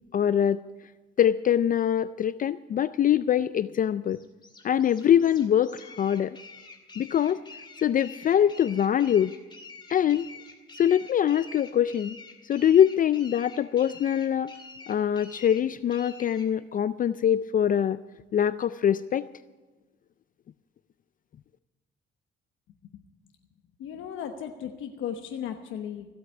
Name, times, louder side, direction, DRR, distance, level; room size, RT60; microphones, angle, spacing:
voice 1, 0.1-0.6 1.2-4.2 4.6-6.4 7.0-7.4 7.8-9.3 9.9-10.3 10.7-12.2 12.4-14.5 14.9-18.0 18.3-19.3, left 9 dB, 45° left, 15 dB, 0.4 m, -23 dB
sound 1, 4.1-16.5, left 3 dB, 25° left, 2.3 m, -47 dB
voice 2, 23.8-26.1, left 9 dB, 85° left, 5 dB, 1.1 m, -36 dB
15.5 x 8.1 x 8.7 m, 1.2 s
cardioid pair, 90°, 20 cm